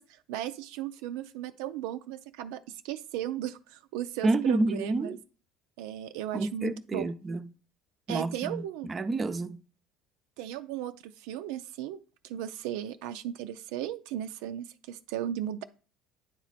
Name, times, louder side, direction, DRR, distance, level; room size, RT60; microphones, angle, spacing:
voice 1, 0.0-5.2 5.8-7.1 8.1-8.9 10.4-12.0 12.2-15.6, right 11 dB, 80° right, 0.4 m, -36 dB
voice 2, 4.2-5.2 6.3-7.5 8.1-9.6, right 2 dB, 25° right, 0.5 m, -29 dB
9.2 x 3.1 x 4.1 m
supercardioid pair, 95°, 0 cm